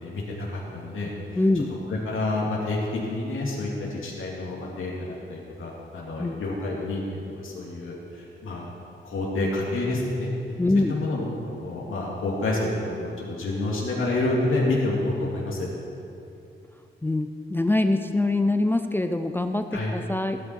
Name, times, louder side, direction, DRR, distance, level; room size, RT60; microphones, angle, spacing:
voice 1, 0.0-1.4 1.9-2.8 3.1-8.7 9.0-10.3 10.9-11.2 11.6-15.7 19.7-19.9, left 2 dB, 80° left, -4 dB, 2.6 m, -28 dB
voice 2, 1.4-1.7 6.2-6.4 10.6-10.9 17.0-20.4, left 2 dB, 10° left, 7 dB, 0.4 m, -24 dB
18.0 x 9.5 x 4.6 m, 2.7 s
wide cardioid pair, 155°, 21 cm